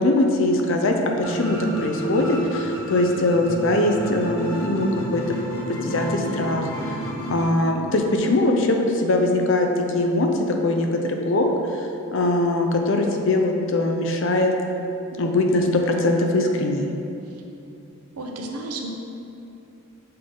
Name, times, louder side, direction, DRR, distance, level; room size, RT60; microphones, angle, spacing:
voice 1, 0.0-5.2 5.7-10.3 10.6-14.5 15.2-16.9, left 2 dB, 60° left, 3 dB, 0.5 m, -22 dB
sound 1, 1.2-7.4, right 1 dB, 85° left, 1.3 m, -30 dB
voice 2, 18.2-18.9, right 2 dB, 90° right, 2 dB, 0.7 m, -33 dB
6.6 x 3.8 x 3.7 m, 2.8 s
head